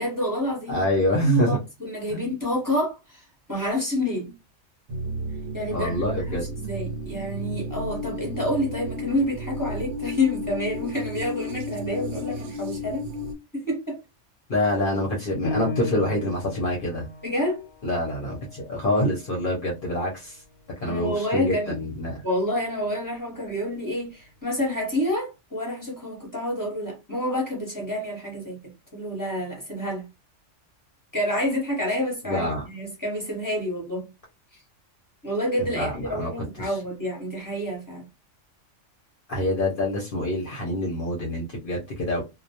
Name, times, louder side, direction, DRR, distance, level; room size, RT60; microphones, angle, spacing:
voice 1, 0.0-0.8 1.2-4.3 5.5-13.0 13.5-14.0 17.2-17.7 20.8-21.8 22.2-28.6 28.9-30.1 31.1-34.1 34.5-34.6 35.2-38.1, left 1 dB, 20° left, 0.8 m, -28 dB
voice 2, 0.7-1.6 2.1-2.3 5.7-6.4 14.5-17.1 17.8-20.4 20.8-22.1 32.2-32.6 35.7-36.3 36.6-36.8 39.3-42.2, left 1 dB, 55° left, 0.7 m, -26 dB
sound 1, 4.9-13.3, left 1 dB, 75° right, 0.9 m, -33 dB
Piano, 15.4-20.6 21.1-21.2 21.8-22.3, left 2 dB, 85° left, 0.9 m, -37 dB
2.2 x 2.1 x 2.7 m
omnidirectional pair, 1.3 m